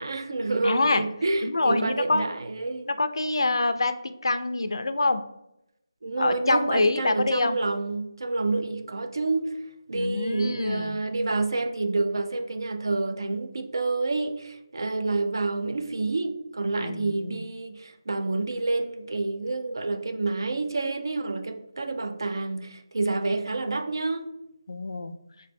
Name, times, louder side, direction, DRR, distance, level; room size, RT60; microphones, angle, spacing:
voice 1, 0.0-2.9 6.0-9.5 9.9-24.3, right 3 dB, 60° right, 0.3 m, -28 dB
voice 2, 0.6-1.0 1.4-2.3 2.9-5.2 6.2-7.6 9.9-11.0 16.8-17.4 24.7-25.1, left 2 dB, 75° left, 0.3 m, -25 dB
3.0 x 2.1 x 4.2 m
figure-of-eight pair, 175°, 3 cm